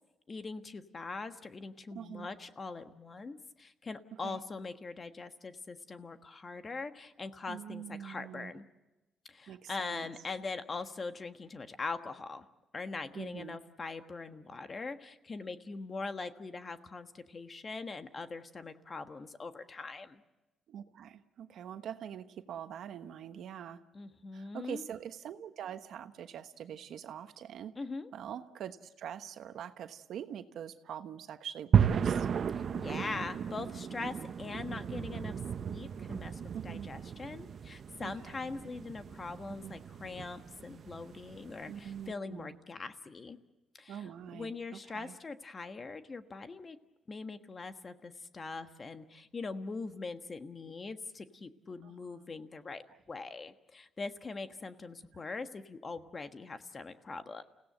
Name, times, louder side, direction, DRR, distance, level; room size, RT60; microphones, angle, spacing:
voice 1, 0.3-8.7 9.3-12.4 12.7-20.2 23.9-24.8 27.7-28.1 32.5-43.4 43.7-46.8 47.1-57.4, left 3 dB, 35° left, 9 dB, 1.4 m, -42 dB
voice 2, 1.9-2.3 4.2-4.4 7.5-8.5 9.5-10.1 13.1-13.6 20.7-23.8 24.3-27.7 28.1-32.3 36.5-36.9 38.0-38.1 39.6-39.7 41.7-42.6 43.9-45.1 51.8-52.3 55.2-55.3, right 9 dB, 70° right, 9 dB, 1.2 m, -44 dB
sound 1, 31.7-42.0, right 8 dB, 55° right, 0.8 m, -34 dB
29.5 x 17.0 x 7.9 m, 1.0 s
cardioid pair, 90°, 0 cm